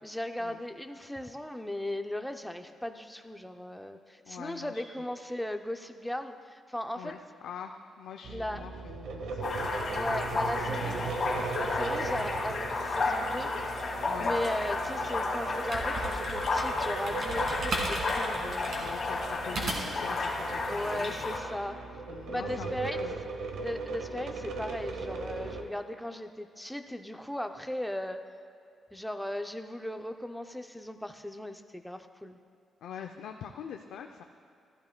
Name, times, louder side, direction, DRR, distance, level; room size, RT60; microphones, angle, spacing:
voice 1, 0.0-7.1 8.3-8.6 9.9-11.0 11.5-13.5 14.2-18.7 20.7-21.8 22.3-23.0 23.6-28.2 28.9-32.4, left 1 dB, 5° left, 7 dB, 0.5 m, -37 dB
voice 2, 4.3-4.8 7.0-9.7 10.4-11.5 13.0-13.3 14.0-14.4 18.8-21.3 22.1-23.3 32.8-34.2, left 8 dB, 85° left, 4 dB, 0.4 m, -44 dB
sound 1, 8.2-25.6, right 4 dB, 80° right, 0.9 m, -39 dB
sound 2, 9.4-21.4, left 3 dB, 45° left, 1.9 m, -32 dB
sound 3, 15.7-20.1, right 2 dB, 50° right, 2.0 m, -36 dB
14.5 x 12.0 x 2.2 m, 2.6 s
cardioid pair, 125°, 0 cm